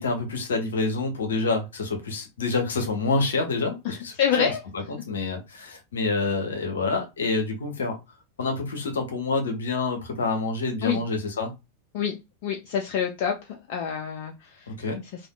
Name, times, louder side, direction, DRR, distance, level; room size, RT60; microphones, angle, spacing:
voice 1, 0.0-8.0 8.4-11.5 14.7-15.0, left 3 dB, 65° left, 0.8 m, -27 dB
voice 2, 4.2-4.6 10.8-11.0 11.9-12.1 12.4-14.3 14.6-14.7, left 8 dB, 45° left, 0.4 m, -26 dB
3.4 x 2.3 x 2.2 m
figure-of-eight pair, 90°, 0 cm